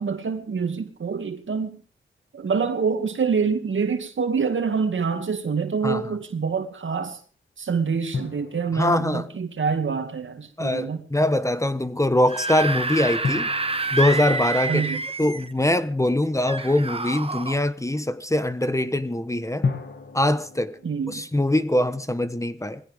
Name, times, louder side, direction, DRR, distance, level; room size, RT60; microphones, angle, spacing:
voice 1, 0.0-1.8 2.3-7.2 7.6-11.0 14.7-15.0 20.8-21.3, right 5 dB, 70° right, 2.4 m, -26 dB
sound 1, 8.1-10.4 13.2-16.2 19.6-21.5, left 4 dB, 60° left, 2.4 m, -34 dB
voice 2, 8.7-9.3 10.6-13.5 13.9-19.6 20.1-20.7 21.1-22.8, left 1 dB, 15° left, 1.2 m, -23 dB
Screaming / Screech, 12.1-15.5 16.5-17.6, right 3 dB, 25° right, 1.3 m, -28 dB
21.5 x 16.5 x 3.7 m
cardioid pair, 60°, 21 cm